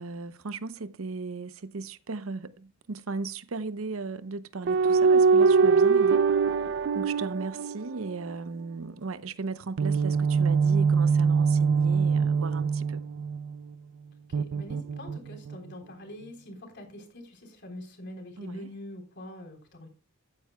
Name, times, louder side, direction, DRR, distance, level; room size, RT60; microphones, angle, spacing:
voice 1, 0.0-6.2 6.9-13.0 18.4-18.7, right 4 dB, 85° right, 0.7 m, -36 dB
sound 1, 4.7-8.3 9.8-13.5 14.3-15.6, right 5 dB, 60° right, 0.4 m, -23 dB
voice 2, 14.3-19.9, left 1 dB, 60° left, 3.7 m, -44 dB
15.0 x 9.5 x 2.2 m
head